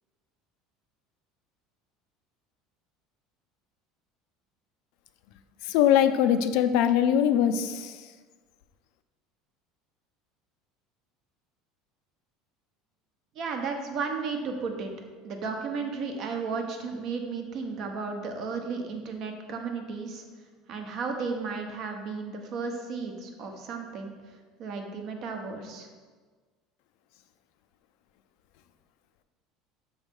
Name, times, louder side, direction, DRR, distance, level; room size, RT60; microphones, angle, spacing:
voice 1, 5.7-8.0, left 9 dB, 70° left, 10 dB, 0.4 m, -22 dB
voice 2, 13.3-14.9 15.2-20.2 20.7-24.1 24.6-25.9, right 4 dB, 45° right, 4 dB, 0.8 m, -34 dB
6.1 x 3.2 x 5.3 m, 1.4 s
cardioid pair, 150°, 0 cm